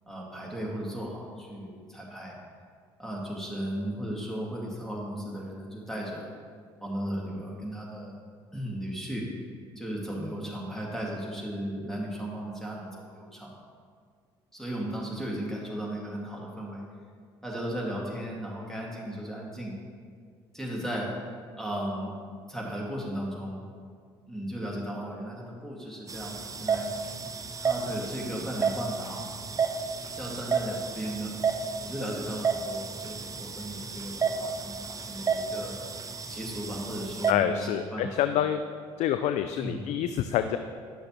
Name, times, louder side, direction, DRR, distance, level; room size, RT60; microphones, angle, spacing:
voice 1, 0.1-2.4 3.0-6.3 6.8-8.2 8.5-9.3 9.8-13.5 14.5-16.8 17.4-19.8 20.5-21.1 21.6-22.1 22.5-23.6 24.3-26.9 27.6-29.3 30.1-31.3 31.8-35.8 36.3-38.1 39.6-39.9, equal, 5° left, -3 dB, 2.1 m, -36 dB
sound 1, 26.1-37.3, right 5 dB, 25° right, 0.6 m, -32 dB
voice 2, 37.3-38.6 39.0-40.6, left 11 dB, 60° left, 9 dB, 0.4 m, -27 dB
9.9 x 6.4 x 3.1 m, 2.1 s
hypercardioid pair, 55°, 14 cm